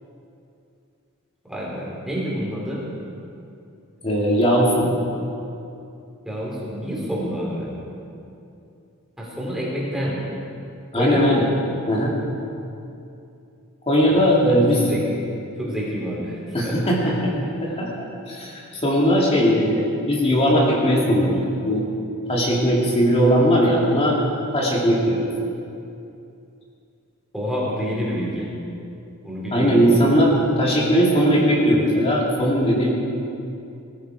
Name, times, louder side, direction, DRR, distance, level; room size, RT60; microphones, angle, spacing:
voice 1, 1.4-2.9 6.2-7.8 9.2-10.2 10.9-11.3 14.1-15.0 15.6-17.1 27.3-28.5 29.2-30.2, equal, ahead, -6 dB, 4.3 m, -28 dB
voice 2, 4.0-5.0 10.9-11.5 11.9-12.1 13.9-14.8 16.5-17.3 17.6-21.8 22.3-24.2 24.5-25.3 29.5-32.9, equal, 30° left, -4 dB, 2.5 m, -19 dB
19.5 x 14.5 x 4.8 m, 2.6 s
head